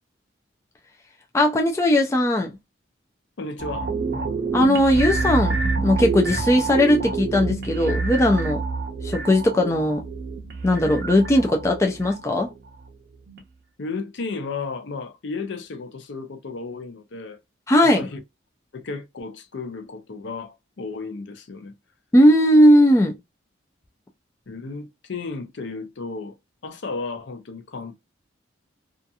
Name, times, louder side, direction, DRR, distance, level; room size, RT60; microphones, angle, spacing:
voice 1, 1.3-2.5 4.5-8.6 9.0-10.0 10.6-12.5 17.7-18.1 22.1-23.1, left 1 dB, 15° left, 0.3 m, -18 dB
voice 2, 3.4-3.9 13.8-17.4 17.8-18.2 18.7-21.7 24.5-26.3 26.6-28.0, left 4 dB, 70° left, 0.5 m, -33 dB
sound 1, 3.6-12.9 13.3-13.4, right 4 dB, 55° right, 0.7 m, -28 dB
2.7 x 2.5 x 2.3 m
head